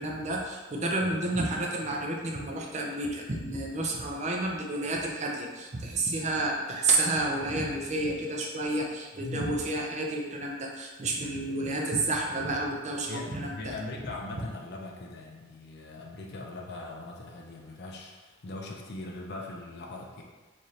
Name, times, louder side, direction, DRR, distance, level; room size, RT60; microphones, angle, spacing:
voice 1, 0.0-13.7, right 2 dB, 35° right, 0 dB, 0.5 m, -30 dB
voice 2, 9.2-9.5 13.0-20.2, left 2 dB, 55° left, 0 dB, 0.5 m, -40 dB
4.1 x 2.6 x 3.1 m, 1.3 s
head